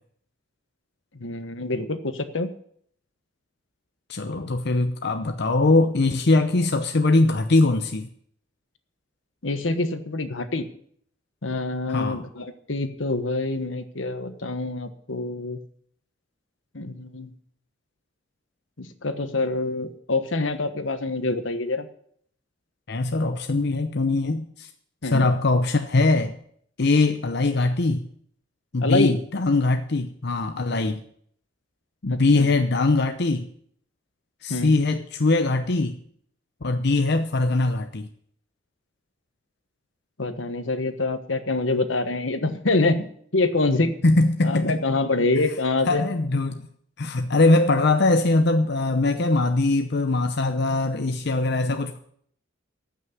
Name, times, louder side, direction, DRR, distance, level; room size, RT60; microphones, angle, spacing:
voice 1, 1.1-2.5 9.4-10.7 11.4-15.6 16.7-17.3 18.8-21.9 25.0-25.3 28.8-29.1 32.1-32.5 34.5-34.7 40.2-43.9 44.4-46.1 51.6-51.8, left 2 dB, 85° left, 1.3 m, -26 dB
voice 2, 4.1-8.1 11.9-12.2 22.9-24.7 25.0-26.4 26.8-28.1 28.7-31.0 32.0-33.5 34.4-36.0 36.6-38.1 44.0-44.8 45.4-45.5 45.9-46.6 47.0-52.0, left 2 dB, 60° left, 0.8 m, -21 dB
14.0 x 6.3 x 9.4 m
head